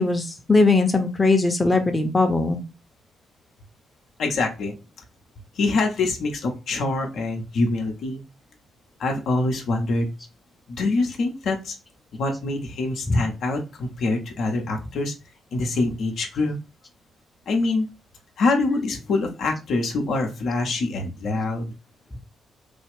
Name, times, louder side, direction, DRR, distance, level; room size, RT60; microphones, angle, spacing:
voice 1, 0.0-2.6 13.1-13.2, left 3 dB, 25° left, 5 dB, 0.8 m, -20 dB
voice 2, 4.2-4.7 5.5-8.2 9.0-10.1 10.7-11.8 12.1-15.1 15.5-16.6 17.5-17.9 18.4-21.7, left 3 dB, 65° left, 2 dB, 0.7 m, -25 dB
3.4 x 2.3 x 3.4 m, 0.29 s
hypercardioid pair, 40°, 0 cm